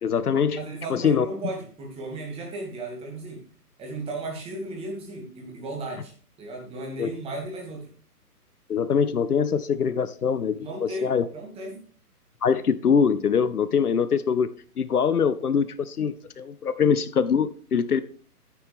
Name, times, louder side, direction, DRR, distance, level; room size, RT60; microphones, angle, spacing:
voice 1, 0.0-0.6 0.9-1.3 7.0-7.1 8.7-11.3 12.4-14.5 14.8-18.0, left 6 dB, 70° left, 14 dB, 0.7 m, -23 dB
voice 2, 0.5-3.4 3.8-6.1 6.4-7.9 10.5-11.8, right 2 dB, 10° right, 0 dB, 2.2 m, -35 dB
9.8 x 9.5 x 3.5 m, 0.44 s
figure-of-eight pair, 130°, 47 cm